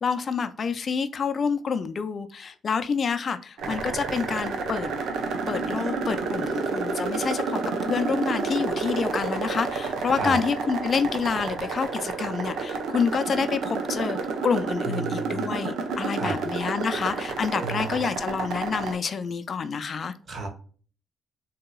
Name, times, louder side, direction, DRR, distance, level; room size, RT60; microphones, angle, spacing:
voice 1, 0.0-4.9 5.5-14.2 14.4-20.1, left 5 dB, 45° left, 0.3 m, -28 dB
sound 1, 3.6-19.0, right 4 dB, 75° right, 0.7 m, -30 dB
voice 2, 14.8-15.5 16.2-16.3 17.6-18.1 20.3-20.5, right 4 dB, 45° right, 1.0 m, -32 dB
3.9 x 2.8 x 2.2 m
cardioid pair, 90°, 0 cm